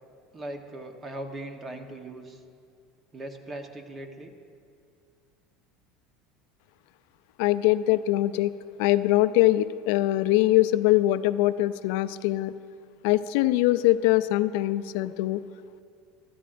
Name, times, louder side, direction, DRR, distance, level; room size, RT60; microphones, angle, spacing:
voice 1, 0.3-2.4 3.1-4.3, right 1 dB, 25° right, 5 dB, 1.1 m, -39 dB
voice 2, 7.4-8.5 8.8-12.5 13.0-15.4, left 16 dB, 75° left, 14 dB, 0.3 m, -22 dB
15.5 x 12.5 x 2.6 m, 2.3 s
supercardioid pair, 120°, 0 cm